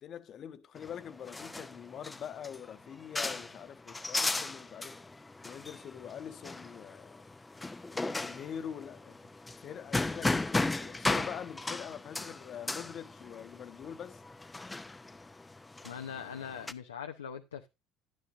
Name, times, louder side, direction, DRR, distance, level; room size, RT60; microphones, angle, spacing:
voice 1, 0.0-5.0 5.4-7.2 7.9-9.2 9.6-14.2, left 8 dB, 45° left, 1.2 m, -44 dB
sound 1, 0.8-16.7, left 2 dB, 15° left, 0.7 m, -36 dB
voice 2, 15.8-17.7, left 7 dB, 85° left, 0.8 m, -41 dB
11.0 x 11.0 x 2.5 m
hypercardioid pair, 65°, 0 cm